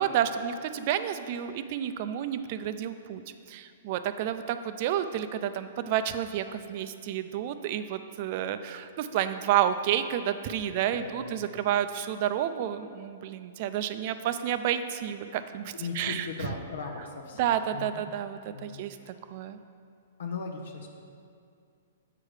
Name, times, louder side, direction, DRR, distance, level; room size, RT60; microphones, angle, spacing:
voice 1, 0.0-3.2 3.5-16.5 17.4-19.6, right 10 dB, 50° right, 11 dB, 0.4 m, -30 dB
voice 2, 10.9-11.4 15.7-18.1 18.5-19.2 20.2-20.9, left 4 dB, 75° left, 2 dB, 0.7 m, -38 dB
7.5 x 4.8 x 4.8 m, 2.4 s
hypercardioid pair, 130°, 0 cm